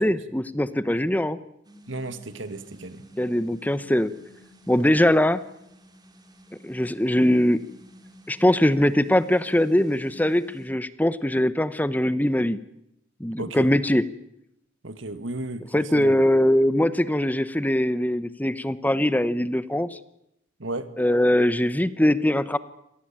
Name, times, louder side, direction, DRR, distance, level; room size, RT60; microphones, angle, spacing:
voice 1, 0.0-1.4 3.2-4.1 4.7-5.4 6.6-7.6 8.3-12.6 13.2-14.0 15.7-20.0 21.0-22.6, left 1 dB, 10° left, 15 dB, 0.9 m, -21 dB
sound 1, 1.6-10.7, equal, 20° right, 3.6 m, -50 dB
voice 2, 1.9-3.0 13.4-13.7 14.8-16.3 20.6-20.9, right 2 dB, 85° right, 13 dB, 2.0 m, -34 dB
26.5 x 18.5 x 8.8 m, 0.81 s
head